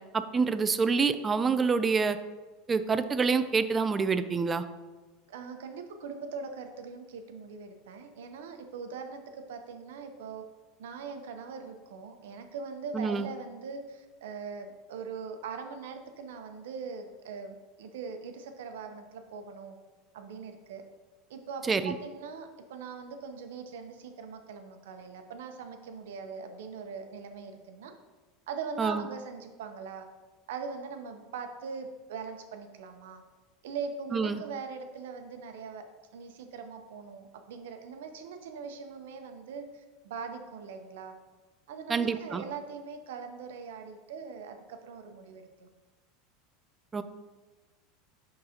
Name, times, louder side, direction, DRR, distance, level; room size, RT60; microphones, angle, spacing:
voice 1, 0.1-2.2 2.7-4.6 12.9-13.3 21.7-22.0 28.8-29.1 34.1-34.4 41.9-42.4 46.9-47.0, right 5 dB, 15° right, 10 dB, 0.3 m, -27 dB
voice 2, 5.3-10.4 10.8-19.8 20.1-20.8 21.3-27.9 28.5-30.1 30.5-33.2 33.6-35.9 36.1-41.2 41.7-45.7, right 5 dB, 90° right, 6 dB, 0.8 m, -41 dB
10.5 x 3.9 x 2.9 m, 1.3 s
supercardioid pair, 140°, 0 cm